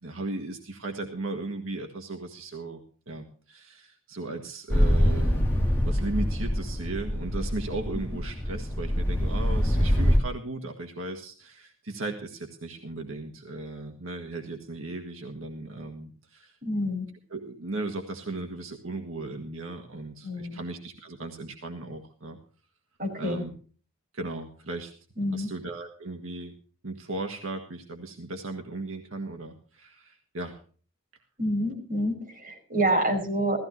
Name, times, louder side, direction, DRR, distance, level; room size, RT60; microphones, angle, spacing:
voice 1, 0.0-5.4 5.8-16.6 17.3-22.4 23.2-23.5 24.1-24.9 25.3-26.5 26.8-30.6, right 2 dB, 90° right, 3 dB, 1.7 m, -36 dB
sound 1, 4.7-10.2, equal, 10° left, 2.6 m, -25 dB
voice 2, 16.6-17.1 20.2-20.6 23.0-23.4 25.2-25.5 31.4-33.6, right 1 dB, 45° right, 1 dB, 5.5 m, -27 dB
16.5 x 14.5 x 3.1 m, 0.42 s
head